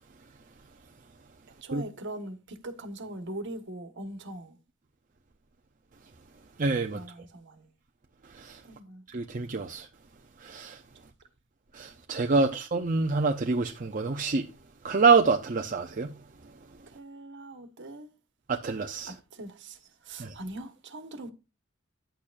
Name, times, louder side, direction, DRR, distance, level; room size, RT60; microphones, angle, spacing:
voice 1, 1.6-4.6 6.9-7.7 8.6-9.0 12.4-12.6 16.9-18.1 19.1-21.3, right 1 dB, 60° right, 1.4 m, -41 dB
voice 2, 6.6-7.0 8.4-8.6 9.1-9.9 10.4-10.8 11.7-14.5 14.8-16.1 18.5-19.1 20.2-20.3, right 4 dB, 40° right, 0.6 m, -26 dB
10.0 x 8.5 x 2.5 m
head